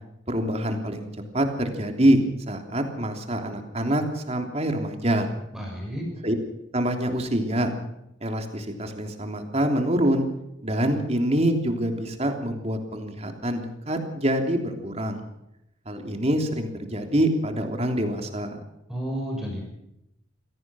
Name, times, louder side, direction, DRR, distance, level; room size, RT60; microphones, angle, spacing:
voice 1, 0.3-1.1 1.3-5.3 6.2-6.3 6.7-7.7 8.2-10.3 10.6-15.2 15.8-18.6, right 1 dB, 35° right, 5 dB, 3.2 m, -25 dB
voice 2, 5.5-6.1 18.9-19.7, equal, 5° right, -1 dB, 6.5 m, -31 dB
26.0 x 17.5 x 6.3 m, 0.84 s
head